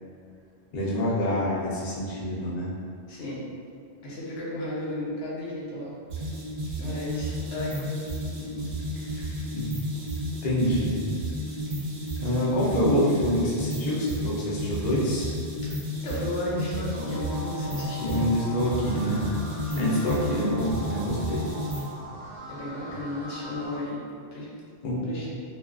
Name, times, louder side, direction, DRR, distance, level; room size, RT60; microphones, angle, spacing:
voice 1, 0.7-2.7 9.2-9.3 9.5-9.7 10.4-11.0 12.2-15.3 18.0-19.3 19.7-21.4 24.8-25.2, equal, 50° left, -6 dB, 0.6 m, -26 dB
voice 2, 3.1-3.4 4.0-5.9 6.7-7.9 8.4-8.7 9.0-9.4 16.0-18.2 19.6-20.0 22.5-24.0 24.3-24.5 25.0-25.3, left 1 dB, 85° left, -7 dB, 1.0 m, -34 dB
sound 1, 6.1-21.9, equal, 55° right, 0.7 m, -32 dB
sound 2, 16.9-23.8, left 1 dB, ahead, 0.7 m, -40 dB
2.3 x 2.3 x 2.4 m, 2.2 s
omnidirectional pair, 1.1 m